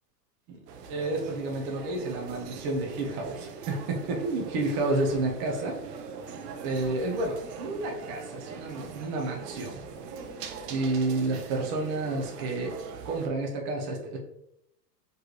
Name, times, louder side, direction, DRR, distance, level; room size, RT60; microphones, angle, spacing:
sound 1, 0.7-13.3, right 5 dB, 85° right, 0.8 m, -42 dB
voice 1, 0.9-5.8 6.6-9.8 10.7-12.8 13.0-14.2, right 2 dB, 30° right, 1 dB, 0.7 m, -30 dB
4.5 x 3.2 x 3.0 m, 0.79 s
supercardioid pair, 165°, 48 cm